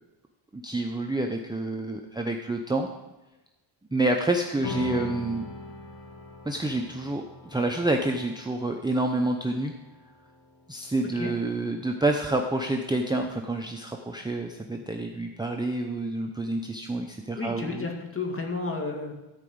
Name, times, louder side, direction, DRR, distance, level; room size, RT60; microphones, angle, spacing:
voice 1, 0.5-2.9 3.9-5.4 6.5-9.7 10.7-17.9, right 2 dB, 10° right, 2 dB, 0.7 m, -28 dB
sound 1, 4.6-11.4, left 3 dB, 70° left, 1.9 m, -41 dB
voice 2, 17.4-19.1, left 3 dB, 25° left, 1 dB, 2.2 m, -32 dB
13.5 x 4.9 x 7.9 m, 1.0 s
cardioid pair, 110°, 48 cm